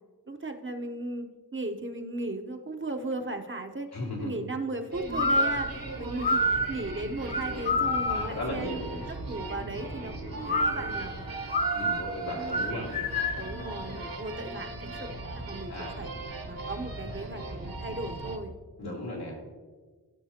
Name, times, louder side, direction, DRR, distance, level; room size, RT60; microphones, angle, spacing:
voice 1, 0.3-1.3 1.5-3.9 4.2-11.1 12.4-12.9 13.4-14.7 15.0-15.1 15.5-16.1 16.5-18.5, right 2 dB, 30° right, 4 dB, 0.9 m, -36 dB
voice 2, 3.9-4.4 8.1-9.0 11.7-12.9 15.7-16.0 18.8-19.4, left 1 dB, 85° left, -4 dB, 2.5 m, -36 dB
sound 1, 4.9-18.4, right 2 dB, 60° right, 1.4 m, -38 dB
sound 2, 5.1-8.4 10.4-13.5, left 1 dB, 25° left, 0.9 m, -28 dB
14.5 x 5.5 x 2.9 m, 1.4 s
cardioid pair, 45°, 38 cm